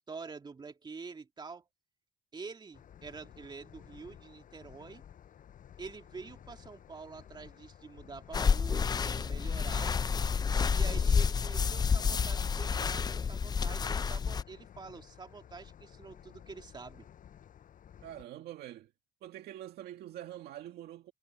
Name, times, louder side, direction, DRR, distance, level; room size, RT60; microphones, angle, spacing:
voice 1, 0.0-1.7 2.3-5.0 5.8-10.0 10.7-17.1, right 4 dB, 25° right, 2.6 m, -47 dB
sound 1, 2.7-18.3, left 9 dB, 50° left, 6.4 m, -55 dB
sound 2, 8.3-14.4, left 6 dB, 25° left, 0.5 m, -29 dB
voice 2, 18.0-18.9 19.2-21.1, right 12 dB, 70° right, 2.1 m, -45 dB
cardioid pair, 110°, 17 cm